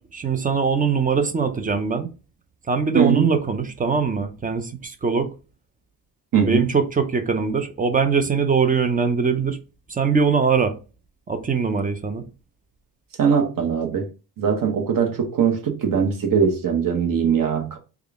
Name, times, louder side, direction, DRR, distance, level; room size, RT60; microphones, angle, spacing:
voice 1, 0.1-2.1 2.7-5.3 6.5-9.6 9.9-10.7 11.3-12.2, right 5 dB, 20° right, 0.4 m, -22 dB
voice 2, 2.9-3.3 6.3-6.7 13.2-14.1 14.4-17.8, right 7 dB, 50° right, 0.9 m, -21 dB
3.5 x 2.3 x 3.5 m
cardioid pair, 140°, 41 cm